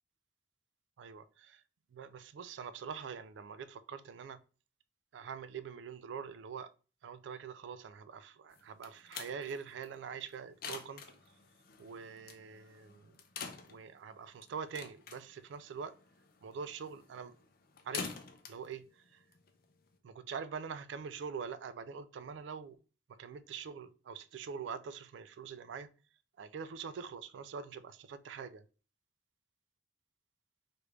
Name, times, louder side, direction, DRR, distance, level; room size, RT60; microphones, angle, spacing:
voice 1, 1.0-1.6 1.9-4.4 5.1-6.7 7.0-11.0 11.8-13.2 13.7-15.9 16.4-17.3 17.9-18.2 18.5-19.2 20.0-22.8 23.1-25.9 26.4-28.6, right 6 dB, 75° right, 0.3 m, -44 dB
sound 1, 8.5-20.0, left 5 dB, 55° left, 0.5 m, -48 dB
3.3 x 2.5 x 3.0 m
head